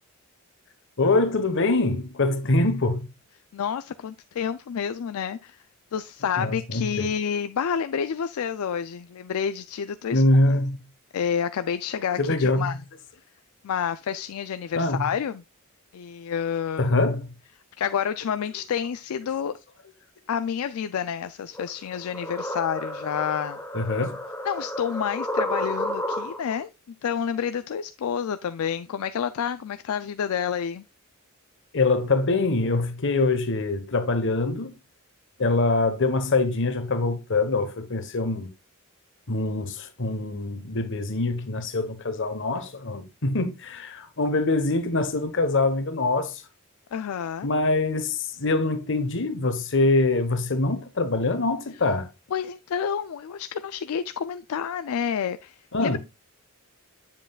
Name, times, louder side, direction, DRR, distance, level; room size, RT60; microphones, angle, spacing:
voice 1, 1.0-3.1 6.4-7.1 10.1-10.8 12.2-12.7 14.7-15.0 16.8-17.3 23.7-24.2 31.7-34.7 35.4-38.5 39.3-46.4 47.4-52.1 55.7-56.0, left 2 dB, 60° left, 1.2 m, -24 dB
voice 2, 3.5-5.6 5.9-10.2 11.1-12.8 13.6-15.4 15.9-17.0 17.8-19.5 20.3-23.6 24.4-26.7 27.0-30.8 46.9-47.5 52.3-56.0, left 7 dB, 75° left, 0.4 m, -29 dB
sound 1, 21.5-26.6, left 1 dB, 10° left, 1.0 m, -31 dB
7.7 x 7.3 x 2.3 m
head